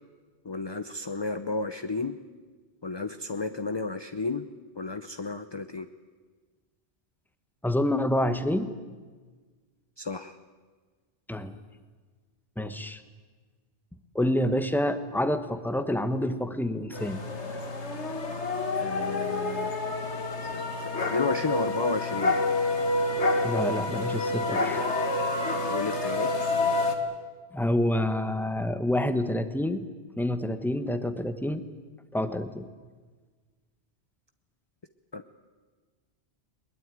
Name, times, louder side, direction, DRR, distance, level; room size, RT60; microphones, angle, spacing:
voice 1, 0.4-2.2 2.8-4.5 4.8-5.9 10.0-10.3 18.7-19.7 20.8-22.4 25.6-26.3 35.1-35.4, left 4 dB, 25° left, 10 dB, 0.7 m, -32 dB
voice 2, 7.6-8.7 11.3-11.5 12.6-13.0 14.1-17.2 23.4-24.9 27.5-29.9 30.2-31.7 32.1-32.7, left 1 dB, ahead, 10 dB, 1.1 m, -28 dB
sound 1, 16.9-27.0, left 2 dB, 90° left, 2.3 m, -28 dB
22.0 x 21.0 x 9.2 m, 1.4 s
omnidirectional pair, 1.1 m